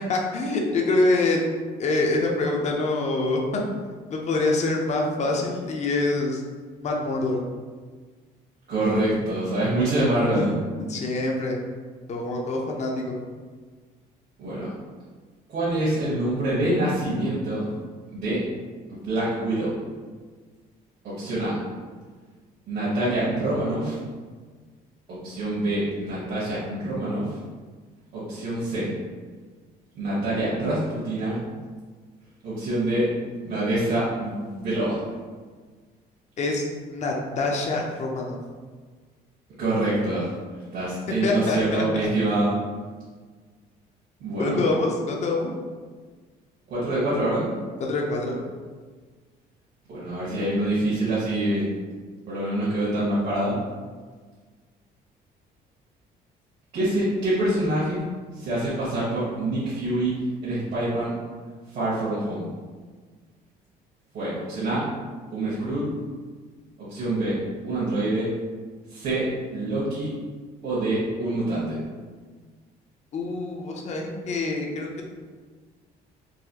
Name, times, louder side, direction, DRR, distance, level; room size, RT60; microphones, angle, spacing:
voice 1, 0.1-1.4 1.8-3.4 4.1-6.4 6.8-7.4 10.3-10.4 10.9-11.6 12.1-13.1 36.4-38.4 41.2-41.8 44.4-45.5 47.8-48.4 73.1-74.9, left 2 dB, 40° left, 0 dB, 0.6 m, -25 dB
voice 2, 8.7-10.5 14.4-14.7 15.5-17.7 18.1-18.4 18.9-19.7 21.0-21.5 22.7-24.0 25.1-27.3 28.1-28.9 29.9-31.4 32.4-33.1 33.4-35.0 39.6-40.3 40.7-42.5 44.2-44.6 46.7-47.5 49.9-51.6 52.3-53.6 56.7-58.0 58.3-60.1 60.4-61.2 61.7-62.4 64.1-64.8 65.3-65.9 66.8-67.3 67.6-68.3 68.9-69.2 69.5-70.1 70.6-71.8, right 1 dB, 65° right, -10 dB, 1.3 m, -25 dB
4.0 x 2.3 x 2.8 m, 1.5 s
cardioid pair, 110°, 17 cm